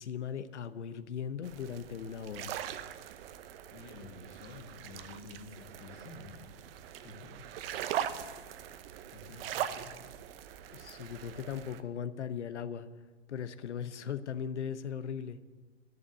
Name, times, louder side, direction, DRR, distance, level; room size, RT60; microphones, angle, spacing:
voice 1, 0.0-2.5 10.7-12.9 13.3-15.4, left 8 dB, 80° left, 12 dB, 0.9 m, -38 dB
sound 1, 1.4-11.8, right 10 dB, 55° right, 1.0 m, -41 dB
voice 2, 3.7-7.5 9.1-10.0, left 4 dB, 35° left, 1 dB, 2.3 m, -50 dB
11.5 x 11.0 x 8.2 m, 1.4 s
hypercardioid pair, 115°, 34 cm